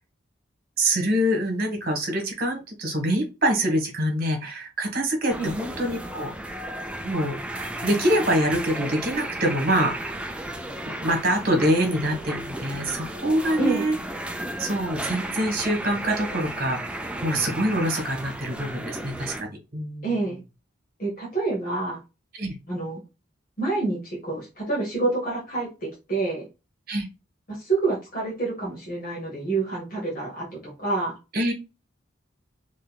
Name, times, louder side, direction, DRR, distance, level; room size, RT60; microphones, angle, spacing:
voice 1, 0.8-6.3 7.0-10.2 10.8-13.9 14.6-20.1 22.4-22.5 26.9-27.1 31.3-31.5, right 1 dB, 50° right, 3 dB, 1.4 m, -25 dB
sound 1, 5.3-19.4, right 1 dB, 5° right, 0.4 m, -34 dB
voice 2, 13.6-13.9 20.0-20.4 21.0-22.0 22.7-23.0 23.6-26.5 27.5-31.2, right 3 dB, 45° left, -4 dB, 1.4 m, -27 dB
3.9 x 3.2 x 2.3 m, 0.28 s
head